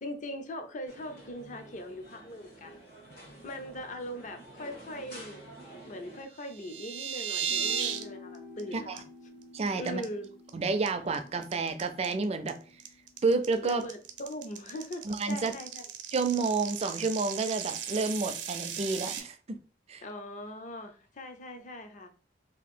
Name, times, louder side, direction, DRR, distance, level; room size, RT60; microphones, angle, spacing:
voice 1, 0.0-2.8 3.4-5.5 5.8-9.0 9.8-10.3 13.6-15.8 20.0-22.1, left 1 dB, 45° left, 0.5 m, -40 dB
sound 1, 0.9-6.2, right 1 dB, 60° left, 1.2 m, -50 dB
Squelch Saw, 6.4-8.0 8.3-8.6 9.0-9.1 9.4-9.7 10.0-10.5 10.9-19.2, right 8 dB, 80° right, 0.6 m, -36 dB
sound 2, 7.4-14.0, left 3 dB, 85° left, 0.8 m, -50 dB
voice 2, 9.5-10.0 10.5-12.6 13.2-13.8 15.0-15.5 16.1-19.6 19.9-20.0, right 3 dB, 35° right, 0.4 m, -30 dB
2.8 x 2.6 x 4.2 m
head